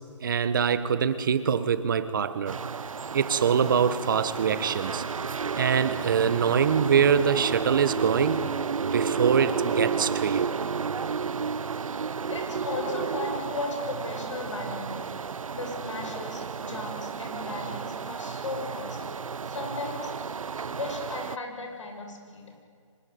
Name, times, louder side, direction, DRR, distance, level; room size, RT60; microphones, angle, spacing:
voice 1, 0.2-2.6 3.1-5.0 5.5-8.4 8.8-10.5, right 7 dB, 40° right, 13 dB, 1.4 m, -24 dB
sound 1, 2.5-21.4, right 5 dB, 85° right, 0.8 m, -32 dB
voice 2, 12.3-15.1 15.5-19.0 19.5-20.1 20.6-22.5, left 3 dB, 65° left, 3 dB, 7.3 m, -36 dB
24.5 x 22.0 x 9.5 m, 2.2 s
hypercardioid pair, 170°, 17 cm